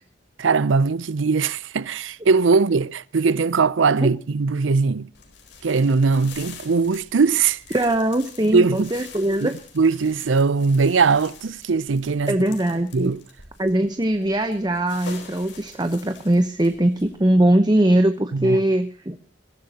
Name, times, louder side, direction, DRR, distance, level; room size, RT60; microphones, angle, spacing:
voice 1, 0.4-5.1 5.6-7.6 8.4-8.9 9.4-9.5 9.8-12.4 12.9-13.2 18.3-18.6, right 4 dB, 85° right, 0.6 m, -20 dB
sound 1, 5.1-17.4, left 5 dB, 65° left, 4.3 m, -45 dB
voice 2, 7.7-9.5 12.3-13.1 13.6-19.2, right 1 dB, 20° right, 0.9 m, -21 dB
22.0 x 15.0 x 2.9 m
head